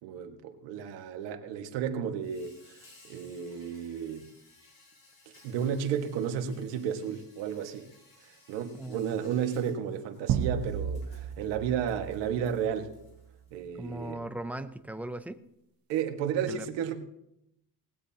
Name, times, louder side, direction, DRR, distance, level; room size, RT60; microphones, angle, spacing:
voice 1, 0.0-2.8 3.0-4.3 5.4-7.9 8.2-12.9 13.5-14.2 15.9-17.0, right 8 dB, 85° right, 1.8 m, -33 dB
Insect, 2.2-13.6, left 3 dB, 45° left, 6.3 m, -60 dB
sound 1, 10.3-13.1, right 8 dB, 55° right, 1.0 m, -33 dB
voice 2, 13.8-15.5 16.5-16.7, right 1 dB, 5° right, 0.5 m, -38 dB
19.5 x 16.5 x 2.9 m
cardioid pair, 150°, 43 cm